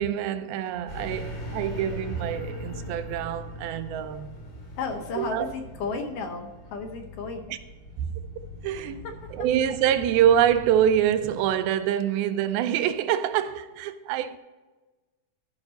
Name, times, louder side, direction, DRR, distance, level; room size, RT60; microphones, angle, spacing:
voice 1, 0.0-4.3 5.2-5.5 7.5-7.6 8.6-9.0 9.3-14.4, right 10 dB, 85° right, 2.4 m, -25 dB
sound 1, 0.9-11.3, left 1 dB, 40° left, 1.8 m, -40 dB
voice 2, 4.8-7.6 8.8-9.0, left 4 dB, 70° left, 2.3 m, -33 dB
14.0 x 5.3 x 4.1 m
omnidirectional pair, 4.4 m